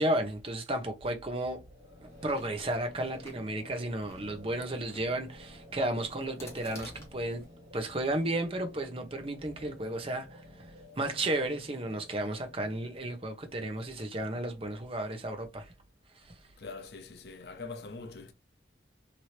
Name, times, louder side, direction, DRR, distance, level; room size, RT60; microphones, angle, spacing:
voice 1, 0.0-1.6 2.2-7.4 7.7-10.7 11.0-15.7, right 1 dB, 30° right, 0.7 m, -33 dB
sound 1, 1.4-15.1, left 1 dB, 50° right, 1.7 m, -52 dB
Chewing mastication, 2.0-7.5, left 1 dB, 15° left, 1.2 m, -53 dB
voice 2, 16.6-18.3, left 3 dB, 60° left, 0.6 m, -43 dB
2.9 x 2.6 x 3.0 m
head